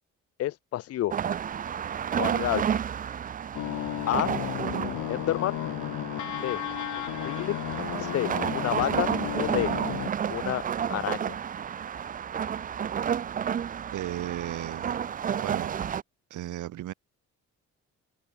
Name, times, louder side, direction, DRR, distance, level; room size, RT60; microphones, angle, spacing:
voice 1, 0.4-1.1 2.2-2.7 4.1-4.3 4.8-5.6 6.4-6.6 7.0-7.6 8.0-9.7 10.3-10.6 10.9-11.4, left 13 dB, 55° left, 0.5 m, -30 dB
sound 1, 1.1-16.0, right 8 dB, 30° right, 0.4 m, -31 dB
sound 2, 3.5-10.1, left 14 dB, 75° left, 1.0 m, -34 dB
voice 2, 13.9-15.0 15.4-15.7 16.3-16.9, right 14 dB, 80° right, 2.1 m, -35 dB
cardioid pair, 90°, 30 cm